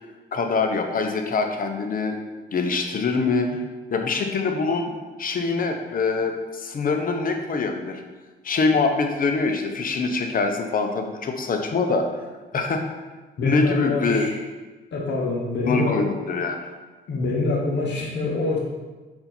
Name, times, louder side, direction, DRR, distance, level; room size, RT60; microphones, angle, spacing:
voice 1, 0.3-2.2 2.5-3.6 3.9-4.9 5.2-8.0 8.4-12.1 12.5-12.8 13.4-14.3 15.6-16.7, left 4 dB, 45° left, 4 dB, 0.8 m, -24 dB
voice 2, 13.4-14.4 14.9-16.0 17.1-18.6, left 2 dB, 65° left, -3 dB, 1.2 m, -25 dB
5.3 x 4.3 x 4.4 m, 1.2 s
cardioid pair, 90°, 20 cm